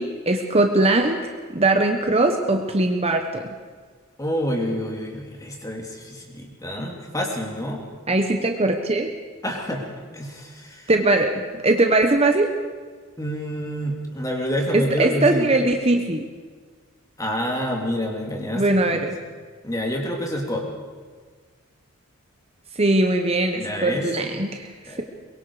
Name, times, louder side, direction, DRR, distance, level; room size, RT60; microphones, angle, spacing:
voice 1, 0.0-3.5 8.1-9.1 10.9-12.5 14.7-16.3 18.5-19.2 22.8-24.7, right 2 dB, 30° right, 5 dB, 1.1 m, -20 dB
voice 2, 4.2-7.8 9.4-9.9 10.1-10.9 13.2-15.5 17.2-18.6 18.9-19.0 19.6-20.6 23.5-24.1 24.8-25.0, equal, 15° left, 1 dB, 3.1 m, -28 dB
23.0 x 22.5 x 5.0 m, 1.5 s
head